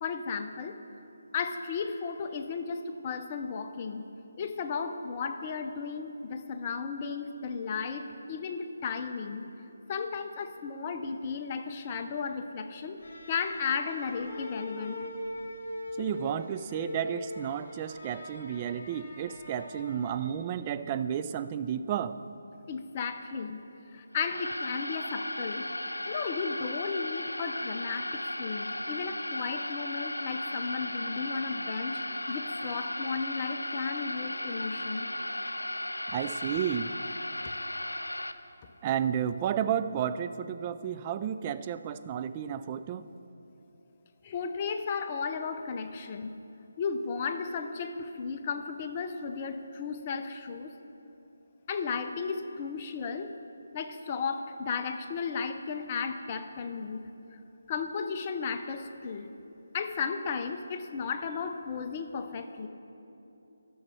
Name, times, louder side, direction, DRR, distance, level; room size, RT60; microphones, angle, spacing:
voice 1, 0.0-0.8 1.3-4.0 4.4-9.5 9.9-13.0 13.3-15.0 22.7-25.7 26.1-35.1 44.2-46.3 46.8-50.8 51.7-53.3 53.7-57.1 57.7-59.3 59.7-62.7, left 5 dB, 30° left, 7 dB, 0.6 m, -34 dB
sound 1, 13.0-20.5, left 1 dB, 50° left, 2.1 m, -42 dB
voice 2, 16.0-22.2 36.1-36.9 38.8-43.1, right 9 dB, 25° right, 11 dB, 0.3 m, -32 dB
sound 2, 24.1-38.3, left 1 dB, 85° left, 0.6 m, -36 dB
12.5 x 6.9 x 6.1 m, 2.9 s
figure-of-eight pair, 150°, 0 cm